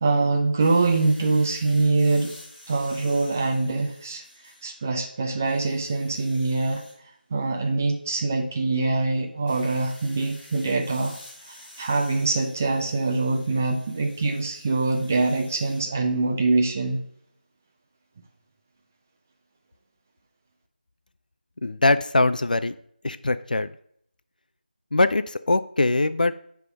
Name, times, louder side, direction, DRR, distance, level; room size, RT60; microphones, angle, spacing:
voice 1, 0.0-2.3 2.7-6.8 7.3-11.2 11.5-17.0, right 3 dB, 15° right, 3 dB, 0.5 m, -24 dB
sound 1, 0.6-4.9 5.3-7.0 9.5-15.8, left 1 dB, 5° left, 1.3 m, -49 dB
voice 2, 21.6-22.8 23.0-23.7 24.9-26.3, left 2 dB, 55° left, 13 dB, 0.4 m, -22 dB
9.4 x 3.5 x 5.2 m, 0.66 s
figure-of-eight pair, 170°, 5 cm